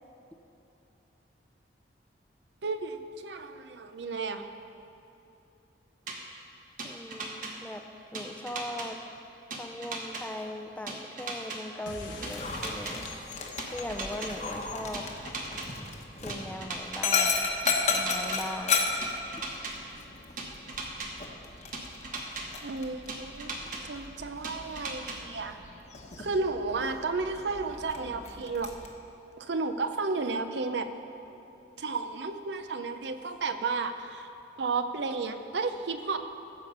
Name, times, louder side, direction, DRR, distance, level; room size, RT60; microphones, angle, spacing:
voice 1, 2.6-4.4 22.6-25.6 26.2-28.7 29.4-30.9 31.8-34.3 34.6-36.2, right 4 dB, 70° right, 8 dB, 0.6 m, -32 dB
sound 1, 6.1-6.2 6.8-7.5 8.1-8.9 9.5-10.2 10.9-11.6 12.2-12.9 13.6-14.3 14.9-15.7 16.3-17.0 17.7-18.4 19.0-19.7 20.4-21.1 21.7-22.4 23.1-23.8 24.4-25.2, right 3 dB, 45° right, 1.2 m, -37 dB
voice 2, 6.8-7.8 8.1-9.0 9.5-13.1 13.7-15.1 16.2-17.5 17.9-18.9, left 1 dB, 5° left, 6 dB, 0.4 m, -39 dB
sound 2, 11.9-16.8, left 3 dB, 85° left, 1.1 m, -46 dB
Dog, 12.2-28.9, left 4 dB, 40° left, 1.0 m, -34 dB
14.5 x 5.0 x 6.6 m, 2.9 s
head